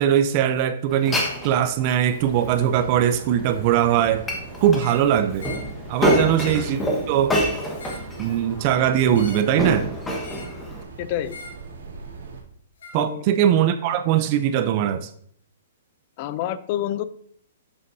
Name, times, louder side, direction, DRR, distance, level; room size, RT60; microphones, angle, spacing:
voice 1, 0.0-4.2 4.6-5.5 5.9-7.4 8.2-9.9 12.9-15.1, right 10 dB, 40° right, 11 dB, 0.4 m, -21 dB
Glass, 0.9-10.8, equal, 10° left, 1.2 m, -28 dB
sound 1, 2.2-12.4, right 4 dB, 75° right, 2.3 m, -40 dB
sound 2, 4.7-5.1 5.4-5.7 6.0-6.7 7.6-8.1 9.1-9.5 10.2-10.6 11.3-11.6 12.8-13.0, left 3 dB, 80° left, 2.3 m, -41 dB
voice 2, 11.0-11.4 13.0-13.2 16.2-17.0, left 12 dB, 40° left, 15 dB, 0.5 m, -28 dB
8.0 x 7.8 x 2.7 m, 0.64 s
hypercardioid pair, 150°, 0 cm